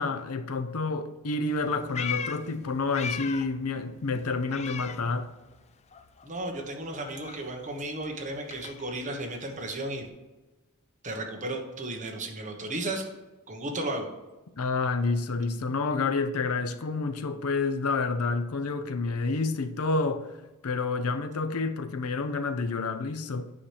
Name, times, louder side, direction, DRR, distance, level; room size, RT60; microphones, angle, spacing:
voice 1, 0.0-5.3 14.6-20.3 20.6-23.5, left 3 dB, 75° left, 0.6 m, -29 dB
Meow, 1.5-3.6 3.9-5.6 5.9-10.1, left 7 dB, 30° left, 0.4 m, -39 dB
voice 2, 6.2-10.1 11.0-13.0 13.5-14.1, right 1 dB, 35° right, 1.2 m, -34 dB
8.6 x 5.8 x 3.3 m
head